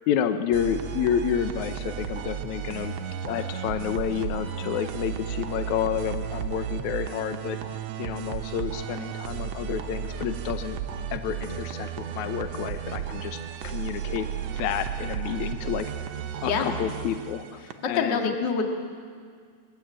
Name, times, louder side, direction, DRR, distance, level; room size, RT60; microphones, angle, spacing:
voice 1, 0.1-2.9 3.2-7.6 8.0-10.8 11.1-14.3 14.6-15.9 16.4-17.6 17.9-18.4, left 9 dB, 75° left, 9 dB, 1.8 m, -29 dB
sound 1, 0.5-18.0, right 9 dB, 80° right, 1.4 m, -34 dB
voice 2, 16.4-16.7 17.9-18.6, left 5 dB, 45° left, 3 dB, 1.6 m, -25 dB
22.0 x 15.5 x 8.9 m, 2.1 s
omnidirectional pair, 4.2 m